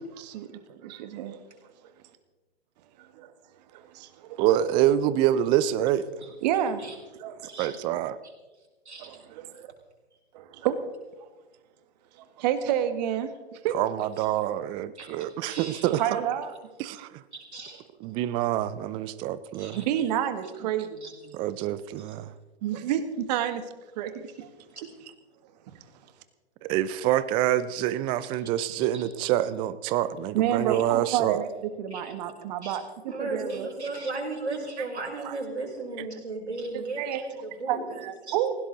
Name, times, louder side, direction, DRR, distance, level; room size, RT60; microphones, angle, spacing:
voice 1, 0.0-1.4 3.0-3.3 3.7-4.4 6.4-6.9 7.2-7.5 9.0-9.7 10.3-10.8 12.4-13.8 15.9-16.5 19.8-21.1 22.6-23.6 24.0-24.5 25.7-25.8 30.3-32.8 33.2-33.7 35.2-35.4 36.7-37.2 37.7-38.6, right 10 dB, 40° right, 10 dB, 1.7 m, -30 dB
voice 2, 4.4-6.0 7.6-8.2 13.7-16.3 16.8-17.1 18.0-19.8 21.3-22.3 26.6-31.4, right 12 dB, 15° right, 15 dB, 0.4 m, -26 dB
voice 3, 15.0-16.0 17.3-17.8 19.6-19.8 21.0-21.1 21.9-22.1 24.8-24.9 28.9-29.0 30.7-30.8 31.9-32.0 32.6-32.8 33.1-38.4, right 3 dB, 85° right, -1 dB, 5.5 m, -36 dB
19.5 x 16.5 x 4.0 m, 1.2 s
hypercardioid pair, 125°, 33 cm